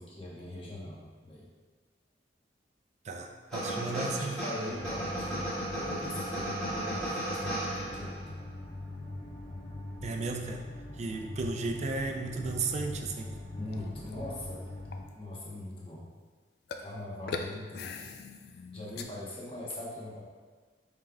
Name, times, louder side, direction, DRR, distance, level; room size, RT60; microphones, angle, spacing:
voice 1, 0.0-1.5 3.6-8.2 13.6-14.7 15.1-16.1 16.8-17.9 18.4-20.2, left 1 dB, 30° left, -5 dB, 0.9 m, -42 dB
voice 2, 3.1-4.4 10.0-10.7 11.0-13.4, right 3 dB, 40° right, 3 dB, 0.4 m, -34 dB
sound 1, 3.5-8.3, right 1 dB, 5° left, 1.4 m, -35 dB
sound 2, 4.7-15.0, left 1 dB, 80° left, 1.0 m, -42 dB
sound 3, 13.7-14.5 14.9-15.1 16.7-16.9 17.3-19.0, left 4 dB, 60° left, 0.3 m, -40 dB
5.3 x 3.6 x 2.2 m, 1.4 s
head